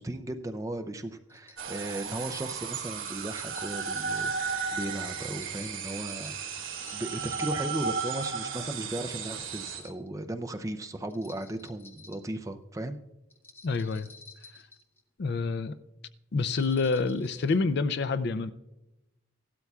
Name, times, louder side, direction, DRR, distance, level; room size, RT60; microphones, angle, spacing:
voice 1, 0.0-6.4 6.9-13.0, right 1 dB, 15° right, 6 dB, 0.5 m, -36 dB
sound 1, 1.3-1.6 2.9-4.4 5.4-7.7 8.0-8.6 9.5-10.1 11.1-12.3 13.3-15.0 16.4-17.6, left 3 dB, 10° left, 0.8 m, -53 dB
sound 2, 1.6-9.8, right 5 dB, 80° right, 2.4 m, -34 dB
voice 2, 13.6-14.1 15.2-15.7 16.3-18.5, left 4 dB, 55° left, 13 dB, 0.4 m, -27 dB
16.0 x 12.5 x 2.3 m, 0.95 s
head